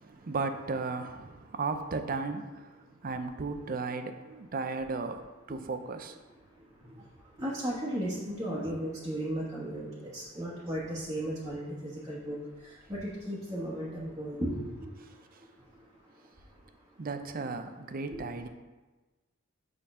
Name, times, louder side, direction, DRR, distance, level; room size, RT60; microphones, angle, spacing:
voice 1, 0.0-2.7 3.0-5.2 5.5-6.2 17.0-18.5, right 4 dB, 45° right, 8 dB, 0.5 m, -35 dB
voice 2, 7.4-12.4 12.9-14.6 17.3-17.4, right 1 dB, 15° right, -8 dB, 1.3 m, -35 dB
6.8 x 3.8 x 6.0 m, 1.2 s
head